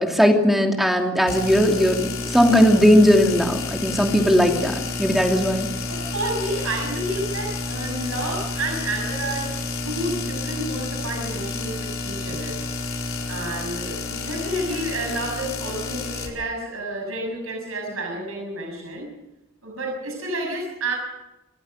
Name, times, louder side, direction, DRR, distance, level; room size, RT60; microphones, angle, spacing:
voice 1, 0.0-4.7 5.0-5.7, equal, ahead, 2 dB, 2.8 m, -18 dB
sound 1, 1.3-16.3, left 3 dB, 75° left, 4.7 m, -30 dB
voice 2, 5.9-9.5 9.8-12.6 13.3-19.1 19.6-20.9, right 1 dB, 85° right, 0 dB, 6.8 m, -30 dB
27.5 x 16.0 x 6.7 m, 1.0 s
head